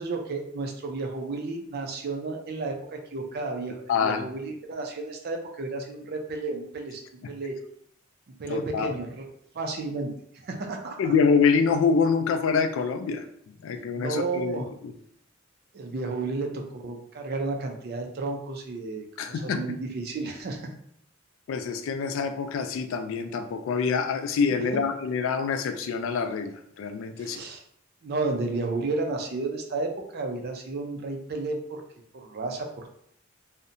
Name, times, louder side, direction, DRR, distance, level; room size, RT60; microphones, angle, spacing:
voice 1, 0.0-7.0 7.3-7.6 8.4-11.1 13.9-14.7 15.7-20.7 27.2-27.6 28.0-31.8 32.1-33.0, right 3 dB, 50° right, 3 dB, 0.4 m, -32 dB
voice 2, 3.9-4.3 7.2-7.3 8.5-8.9 11.0-13.2 13.6-14.6 19.2-19.6 21.5-27.4, left 5 dB, 75° left, 8 dB, 0.3 m, -25 dB
2.7 x 2.1 x 2.5 m, 0.68 s
head